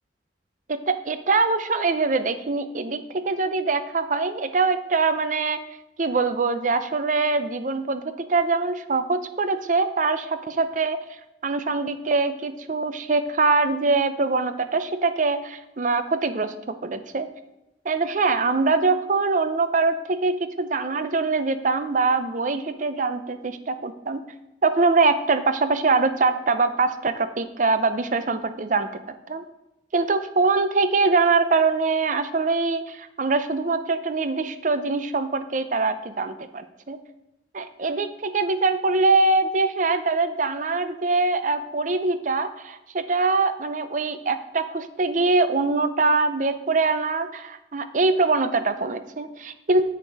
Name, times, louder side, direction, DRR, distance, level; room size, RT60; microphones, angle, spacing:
voice 1, 0.7-5.6 6.0-11.0 11.4-17.3 17.9-24.2 24.6-28.9 29.3-29.4 29.9-37.0 37.5-49.8, right 3 dB, 45° right, 11 dB, 0.6 m, -23 dB
8.6 x 6.7 x 4.8 m, 0.90 s
head